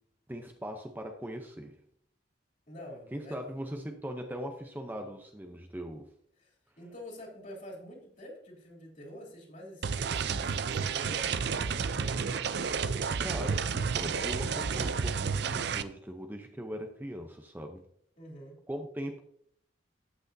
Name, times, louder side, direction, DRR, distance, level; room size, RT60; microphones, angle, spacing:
voice 1, 0.3-1.8 3.1-6.1 13.2-17.8 18.7-19.2, equal, 10° right, 4 dB, 0.7 m, -40 dB
voice 2, 2.7-3.5 6.4-12.3 18.2-18.6, equal, 45° left, -2 dB, 3.1 m, -47 dB
sound 1, 9.8-15.8, right 5 dB, 65° right, 0.5 m, -31 dB
14.0 x 6.2 x 2.7 m, 0.67 s
head